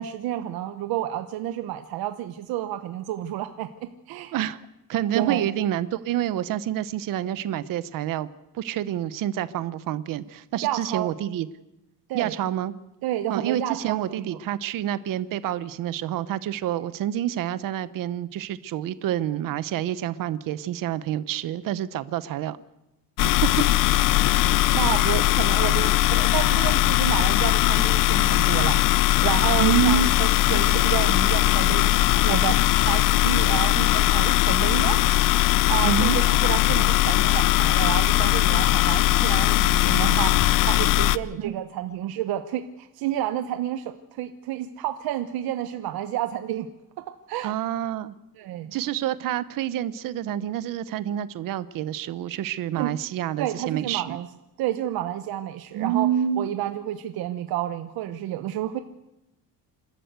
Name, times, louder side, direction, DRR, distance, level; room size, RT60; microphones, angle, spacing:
voice 1, 0.0-4.4 5.1-5.5 10.6-11.1 12.1-12.3 13.0-14.3 23.2-23.3 24.1-24.2 24.7-35.0 35.7-46.7 47.0-47.5 48.4-48.7 52.8-52.9 53.4-54.3 54.6-56.1 56.4-58.8, right 12 dB, 90° right, 9 dB, 1.1 m, -30 dB
voice 2, 4.9-8.3 8.5-11.5 12.1-12.7 13.3-22.6 23.2-23.5 29.6-30.1 35.8-36.2 41.3-41.5 47.4-48.1 48.7-54.2 55.7-56.5, right 11 dB, 65° right, 15 dB, 0.9 m, -27 dB
sound 1, 23.2-41.2, left 15 dB, 65° left, 0.6 m, -20 dB
27.5 x 13.0 x 8.2 m, 0.93 s
cardioid pair, 155°, 35 cm